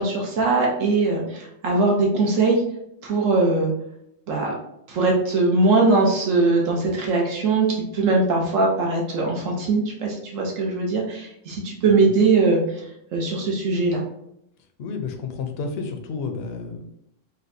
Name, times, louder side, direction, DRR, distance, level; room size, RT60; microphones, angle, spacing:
voice 1, 0.0-2.6 3.0-3.7 4.3-4.5 4.9-12.8 13.1-14.0, right 3 dB, 80° right, -1 dB, 1.2 m, -21 dB
voice 2, 14.8-16.8, left 4 dB, 65° left, 5 dB, 0.7 m, -31 dB
4.2 x 2.2 x 2.6 m, 0.76 s
omnidirectional pair, 1.3 m